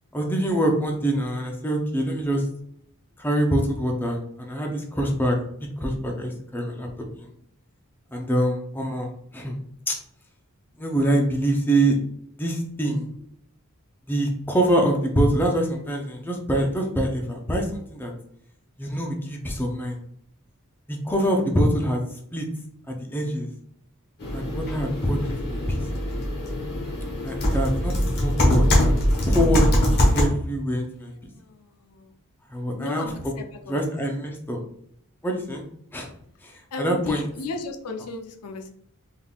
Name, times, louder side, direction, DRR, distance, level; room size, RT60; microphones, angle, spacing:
voice 1, 0.1-2.5 3.2-6.9 7.2-7.3 8.1-9.6 9.9-10.0 10.8-12.0 12.3-13.1 14.1-18.1 18.8-20.0 20.9-22.5 22.9-23.5 24.3-25.8 27.2-28.9 29.3-29.7 30.1-31.1 32.5-33.1 33.7-34.6 35.2-35.6 35.9-36.1 36.4-37.3, right 1 dB, 10° left, 1 dB, 0.5 m, -25 dB
sound 1, 24.2-30.3, left 1 dB, 45° left, 1.1 m, -22 dB
voice 2, 31.4-32.1 32.8-33.7 36.7-38.7, left 4 dB, 90° left, 5 dB, 0.5 m, -35 dB
3.6 x 3.5 x 2.3 m, 0.68 s
head